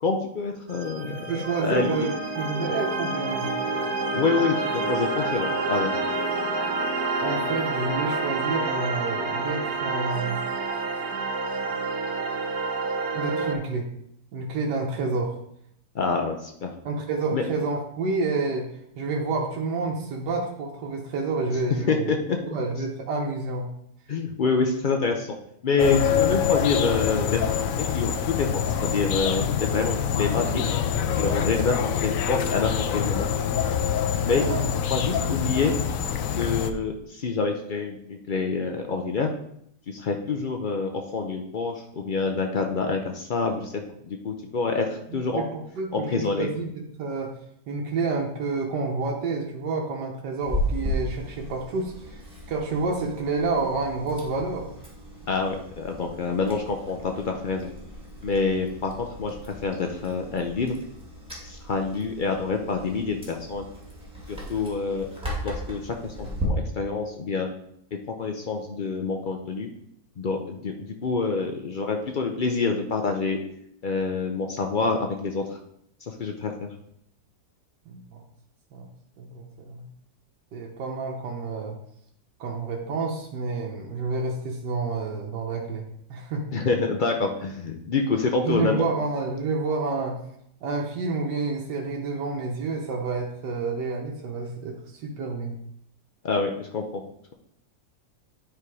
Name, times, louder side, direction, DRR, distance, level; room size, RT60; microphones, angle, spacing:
voice 1, 0.0-1.2 1.6-2.1 4.1-5.9 15.9-16.7 17.3-17.4 21.9-22.4 24.1-25.3 25.6-27.7 27.9-30.6 31.2-33.3 34.2-34.4 34.9-35.7 36.4-39.3 39.9-43.7 44.1-45.5 45.9-46.5 55.3-57.7 58.2-60.8 61.4-63.7 64.3-65.1 65.4-67.5 68.1-69.7 70.2-70.7 71.0-73.4 73.8-75.6 76.0-76.7 86.5-88.8 96.2-97.0, left 4 dB, 90° left, 3 dB, 0.4 m, -27 dB
sound 1, 0.7-13.5, right 3 dB, 65° right, 1.5 m, -28 dB
voice 2, 1.0-3.5 7.2-10.4 13.1-13.9 14.3-15.4 16.8-18.7 19.0-22.1 22.5-23.7 30.3-30.7 34.3-34.7 35.0-35.3 35.6-36.0 45.1-46.7 46.9-47.3 47.7-52.2 52.5-54.7 77.9-78.2 78.7-78.8 79.2-79.8 80.5-81.8 82.4-86.5 88.4-90.2 90.6-94.8 95.0-95.6, right 3 dB, 85° right, -1 dB, 1.5 m, -29 dB
sound 2, 25.8-36.7, left 8 dB, 65° left, 0.9 m, -25 dB
Chewing mastication, 50.4-66.5, equal, 5° right, 1.8 m, -36 dB
9.7 x 3.7 x 4.8 m, 0.71 s
omnidirectional pair, 1.8 m